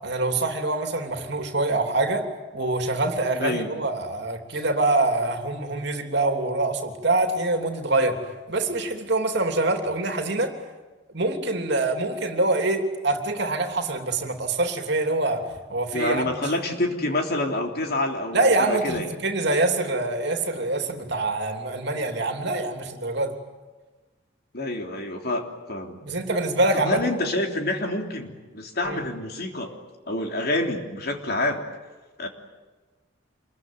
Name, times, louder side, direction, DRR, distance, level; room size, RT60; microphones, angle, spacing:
voice 1, 0.0-2.2 2.5-8.2 8.5-10.5 11.1-15.4 15.7-16.3 18.3-23.3 26.0-27.0 28.8-29.0, right 2 dB, 55° right, 5 dB, 3.2 m, -25 dB
voice 2, 3.3-3.7 15.9-19.1 24.5-26.0 26.7-29.7 30.1-31.6 32.2-32.3, left 1 dB, 50° left, 3 dB, 3.4 m, -27 dB
27.0 x 22.5 x 9.4 m, 1.3 s
head